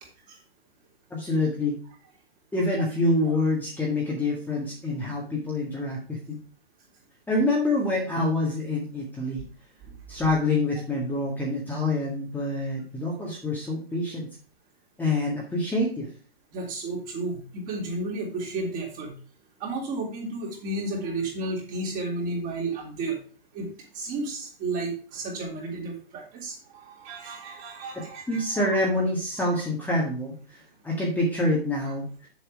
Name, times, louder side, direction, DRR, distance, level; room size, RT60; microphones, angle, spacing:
voice 1, 1.1-1.8 2.5-6.4 7.3-9.4 10.1-14.3 15.0-16.1 28.3-32.3, left 2 dB, 5° left, -3 dB, 1.8 m, -26 dB
voice 2, 16.5-19.2 19.6-23.2 23.5-23.7 23.9-28.7, right 2 dB, 30° right, -1 dB, 3.5 m, -32 dB
7.2 x 6.8 x 4.9 m, 0.38 s
hypercardioid pair, 130°, 30 cm